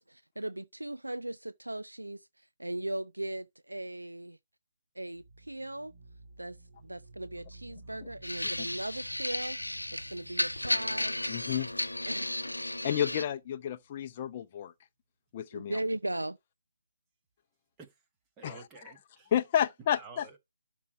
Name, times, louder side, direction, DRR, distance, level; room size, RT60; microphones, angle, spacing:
voice 1, 0.0-4.4 4.9-5.9 6.4-11.2 12.1-12.3 15.5-16.4, right 1 dB, 80° right, 0.5 m, -38 dB
sound 1, 5.1-13.8, right 2 dB, 35° right, 1.4 m, -54 dB
sound 2, 8.2-13.2, left 1 dB, 85° left, 0.7 m, -34 dB
voice 2, 11.3-11.7 12.8-14.7 15.3-15.7 18.4-18.9 19.3-20.3, left 10 dB, 25° left, 0.7 m, -31 dB
voice 3, 18.4-19.3 19.9-20.4, right 4 dB, 15° right, 1.1 m, -50 dB
12.5 x 4.5 x 4.9 m
figure-of-eight pair, 150°, 0 cm